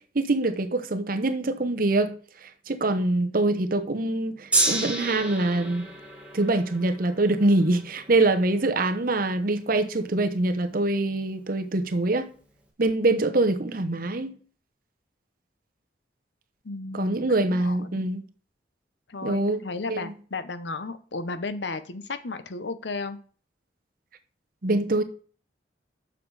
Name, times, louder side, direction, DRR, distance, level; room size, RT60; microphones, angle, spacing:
voice 1, 0.1-2.2 2.7-5.9 6.3-12.3 12.8-14.3 16.9-18.2 19.2-19.6 19.9-20.1 24.6-25.0, right 2 dB, 50° right, 0.9 m, -24 dB
Gong, 4.5-10.9 11.7-11.8, right 2 dB, 5° right, 1.5 m, -31 dB
voice 2, 16.6-17.2 17.5-18.0 19.1-23.2, left 3 dB, 80° left, 0.8 m, -34 dB
6.9 x 6.7 x 4.8 m
head